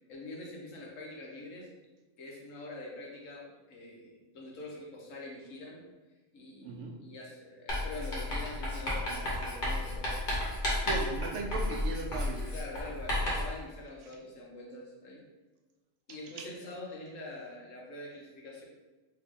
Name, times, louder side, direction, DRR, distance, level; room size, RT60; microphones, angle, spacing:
voice 1, 0.1-1.7 2.2-5.8 6.3-10.2 12.5-15.2 16.1-18.6, left 2 dB, 90° left, -2 dB, 1.3 m, -45 dB
voice 2, 6.6-6.9 10.8-12.5 16.4-16.5, right 3 dB, 75° right, 1 dB, 0.9 m, -37 dB
Writing, 7.7-13.6, left 1 dB, 45° left, 1.2 m, -33 dB
3.3 x 2.8 x 3.5 m, 1.2 s
omnidirectional pair, 1.3 m